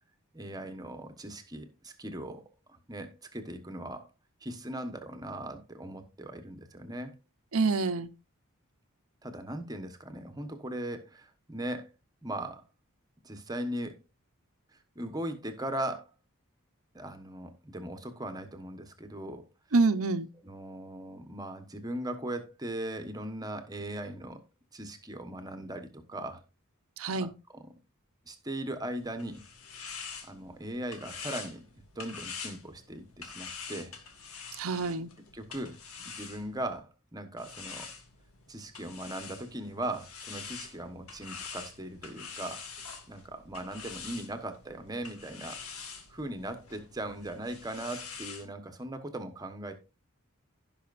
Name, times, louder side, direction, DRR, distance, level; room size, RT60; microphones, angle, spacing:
voice 1, 0.3-2.4 2.7-4.1 4.4-7.1 9.2-11.9 12.2-12.6 13.2-14.0 14.7-16.1 16.9-19.4 20.4-24.4 24.7-26.4 27.2-27.3 27.6-27.7 28.2-29.4 30.2-33.9 35.3-35.8 36.0-37.9 38.5-42.6 43.1-45.8 46.1-49.7, right 1 dB, 15° right, 1.2 m, -39 dB
voice 2, 7.5-8.1 19.7-20.3 27.0-27.3 34.5-35.1, right 3 dB, 70° right, 0.8 m, -27 dB
sound 1, 29.0-36.8 37.4-48.5, left 5 dB, 70° left, 1.9 m, -45 dB
16.0 x 5.7 x 2.5 m
head